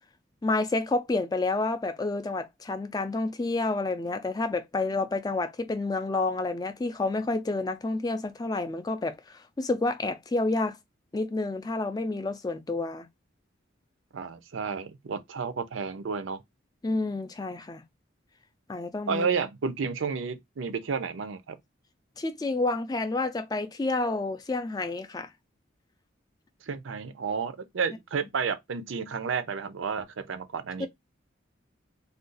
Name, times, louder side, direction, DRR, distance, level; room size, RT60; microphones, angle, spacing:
voice 1, 0.4-10.8 11.1-13.1 16.8-17.8 18.7-19.3 22.2-25.3 30.8-30.9, left 2 dB, 20° left, 0.3 m, -29 dB
voice 2, 14.1-16.4 19.1-21.6 26.7-30.9, right 5 dB, 80° right, 0.5 m, -31 dB
2.5 x 2.3 x 3.8 m
head